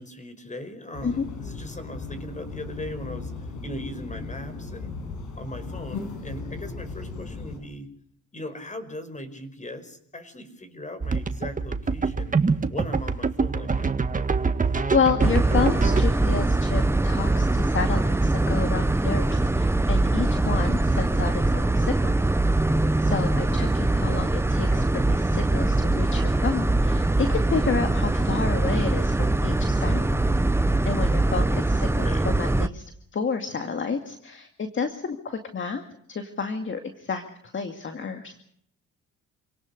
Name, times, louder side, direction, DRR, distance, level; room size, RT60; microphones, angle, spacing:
voice 1, 0.0-4.9 5.4-7.9 8.3-12.4 12.7-13.9 23.3-23.6 31.8-32.3, left 1 dB, 25° left, 12 dB, 5.2 m, -39 dB
sound 1, 0.9-7.6, left 3 dB, 75° left, 7.0 m, -36 dB
sound 2, 11.0-16.0, right 4 dB, 25° right, 1.7 m, -25 dB
voice 2, 14.9-22.2 23.0-30.2 30.8-32.8 33.1-35.8 36.1-37.2 37.5-38.4, left 5 dB, 40° left, 6 dB, 2.3 m, -30 dB
sound 3, 15.2-32.7, right 2 dB, 10° right, 0.9 m, -22 dB
28.0 x 18.0 x 6.7 m, 0.68 s
cardioid pair, 90°, 30 cm